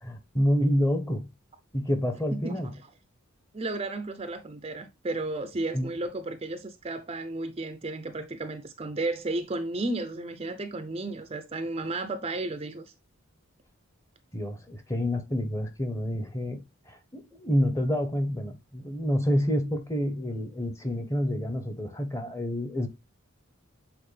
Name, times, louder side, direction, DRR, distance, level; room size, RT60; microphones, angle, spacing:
voice 1, 0.0-1.3 1.7-2.7 5.7-5.9 14.3-22.9, equal, 15° left, 1.0 m, -28 dB
voice 2, 2.3-2.6 3.5-12.8, right 2 dB, 30° right, 0.6 m, -33 dB
7.8 x 4.1 x 3.3 m
head